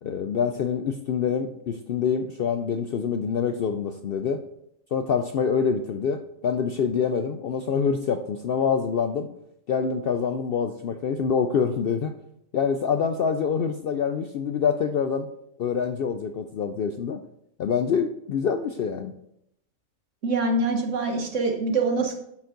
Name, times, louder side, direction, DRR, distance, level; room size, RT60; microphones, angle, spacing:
voice 1, 0.0-4.4 4.9-9.3 9.7-12.1 12.5-15.3 15.6-17.2 17.6-19.1, left 6 dB, 65° left, 7 dB, 0.6 m, -26 dB
voice 2, 20.2-22.2, right 3 dB, 65° right, 3 dB, 1.5 m, -24 dB
10.5 x 5.2 x 3.8 m, 0.78 s
omnidirectional pair, 1.4 m